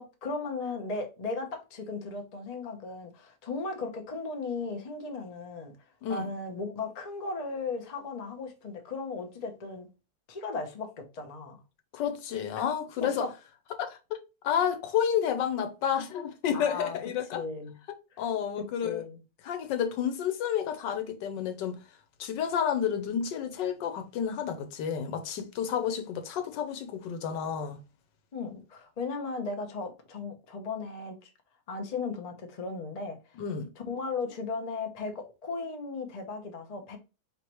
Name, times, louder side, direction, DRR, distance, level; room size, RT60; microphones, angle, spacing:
voice 1, 0.0-5.7 6.1-9.9 10.3-11.6 13.0-13.3 16.5-17.0 17.3-17.7 18.1-18.2 18.6-19.2 28.3-31.3 31.7-33.4 33.9-37.0, left 4 dB, 35° left, 0.7 m, -36 dB
voice 2, 11.9-13.2 13.7-14.0 14.4-17.4 18.2-19.0 19.4-21.8 22.2-27.8 33.4-33.7, left 8 dB, 85° left, 1.4 m, -30 dB
4.6 x 3.2 x 3.0 m
omnidirectional pair, 1.9 m